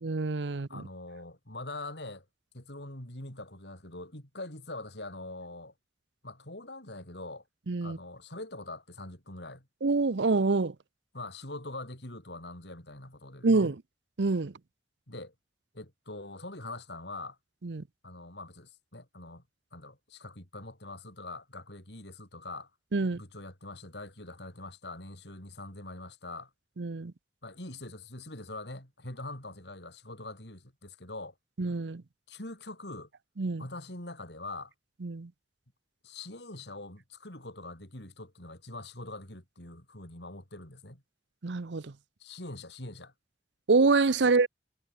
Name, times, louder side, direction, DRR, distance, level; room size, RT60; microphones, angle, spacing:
voice 1, 0.0-0.8 7.7-8.0 9.8-10.7 13.4-13.8 14.2-14.5 17.6-17.8 22.9-23.2 26.8-27.1 31.6-32.0 33.4-33.6 35.0-35.3 41.4-41.9 43.7-44.5, right 3 dB, 75° right, 0.7 m, -26 dB
voice 2, 0.7-2.3 2.5-5.7 6.2-7.4 7.8-9.7 11.1-13.7 15.1-15.3 15.7-17.4 18.0-19.4 19.7-22.7 23.0-26.5 27.4-31.3 32.3-33.1 33.6-34.7 36.0-41.0 42.2-43.1, left 2 dB, 65° left, 5.7 m, -43 dB
head